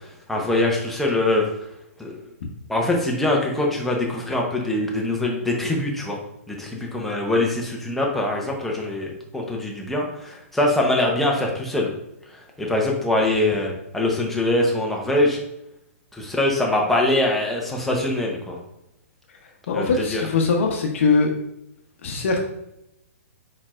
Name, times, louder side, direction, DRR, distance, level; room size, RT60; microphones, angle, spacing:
voice 1, 0.3-1.4 2.0-2.2 2.7-6.2 6.5-11.9 12.6-15.4 16.1-18.6 19.7-20.2, left 1 dB, ahead, -1 dB, 0.6 m, -23 dB
voice 2, 19.7-21.3 22.0-22.4, left 4 dB, 60° left, 2 dB, 0.7 m, -21 dB
4.3 x 4.2 x 2.4 m, 0.81 s
hypercardioid pair, 150°, 8 cm